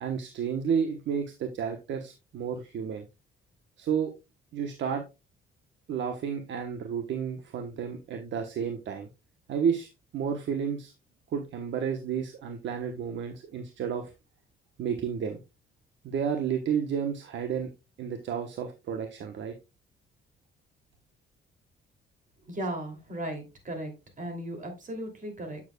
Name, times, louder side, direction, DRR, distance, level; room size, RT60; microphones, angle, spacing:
voice 1, 0.0-3.1 3.8-4.1 4.5-5.0 5.9-9.1 9.5-10.9 11.3-14.1 14.8-15.4 16.0-17.7 18.0-19.6, right 7 dB, 70° right, 6 dB, 1.0 m, -31 dB
voice 2, 22.5-25.6, right 1 dB, 40° right, 5 dB, 2.7 m, -36 dB
8.0 x 7.2 x 2.2 m, 0.26 s
cardioid pair, 90°, 20 cm